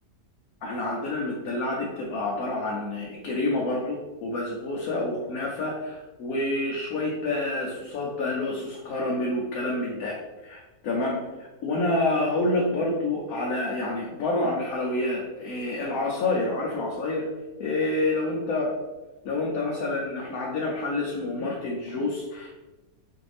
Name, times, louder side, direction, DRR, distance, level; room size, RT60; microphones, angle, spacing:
voice 1, 0.6-10.2 10.4-17.2 17.6-18.7 19.2-22.5, left 2 dB, 75° left, -3 dB, 1.1 m, -28 dB
4.7 x 2.6 x 3.2 m, 1.1 s
omnidirectional pair, 1.6 m